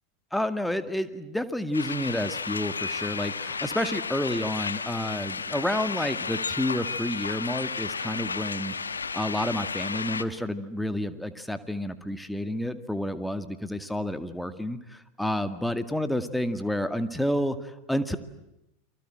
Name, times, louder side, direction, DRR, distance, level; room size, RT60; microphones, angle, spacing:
voice 1, 0.3-8.7 9.1-18.2, left 1 dB, 5° left, 10 dB, 2.1 m, -30 dB
sound 1, 1.7-10.2, left 5 dB, 80° left, 1.3 m, -33 dB
29.5 x 25.0 x 7.7 m, 0.90 s
figure-of-eight pair, 85°, 0 cm